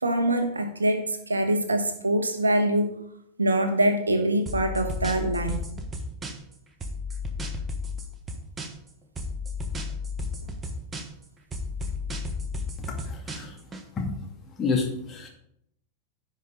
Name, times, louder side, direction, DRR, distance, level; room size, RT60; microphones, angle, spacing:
voice 1, 0.0-2.9 3.4-5.6, right 1 dB, 75° right, 7 dB, 1.2 m, -24 dB
sound 1, 4.5-6.5 6.8-8.9 9.2-11.2 11.5-13.8, left 3 dB, 20° right, 1.4 m, -33 dB
voice 2, 12.8-13.6 14.0-14.1 14.6-15.3, left 4 dB, 25° left, 0 dB, 2.6 m, -29 dB
16.0 x 5.4 x 4.0 m, 0.73 s
figure-of-eight pair, 90°, 0 cm